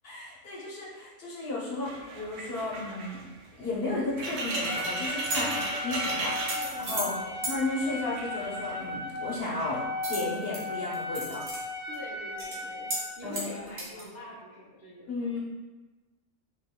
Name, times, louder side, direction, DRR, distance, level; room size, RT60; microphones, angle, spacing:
voice 1, 0.0-3.2 3.6-5.5 5.8-7.1 7.5-9.8 10.1-11.4 13.2-13.4 15.1-15.4, left 2 dB, 55° left, -6 dB, 1.0 m, -34 dB
sound 1, 1.8-7.4 7.7-8.8 9.4-9.8, right 2 dB, 85° right, 1.0 m, -35 dB
sound 2, 4.4-4.8 5.2-5.6 6.3-7.1 7.4-7.5 10.0-10.6 10.9-11.6 11.9-12.0 12.4-12.6 12.9-13.0 13.3-14.0, right 1 dB, 65° right, 1.3 m, -35 dB
Trumpet, 4.7-13.1, left 2 dB, 5° right, 1.4 m, -36 dB
voice 2, 5.4-5.8 6.5-7.4 11.9-12.9 13.2-15.3, left 1 dB, 25° right, -6 dB, 0.4 m, -44 dB
3.8 x 3.6 x 2.2 m, 1.2 s
omnidirectional pair, 1.2 m